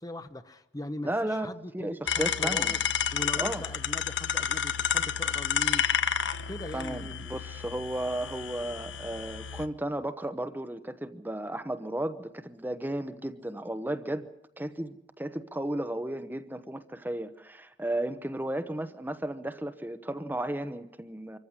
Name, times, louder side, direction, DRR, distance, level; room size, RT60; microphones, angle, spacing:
voice 1, 0.0-2.8 3.1-5.9 6.5-7.2, left 1 dB, 20° left, 10 dB, 0.9 m, -40 dB
voice 2, 1.0-1.5 1.7-2.8 3.4-3.6 6.7-14.3 14.6-21.4, right 1 dB, 10° right, 10 dB, 0.9 m, -34 dB
sound 1, 2.1-9.7, left 7 dB, 80° left, 1.1 m, -30 dB
25.5 x 14.5 x 9.7 m, 0.84 s
head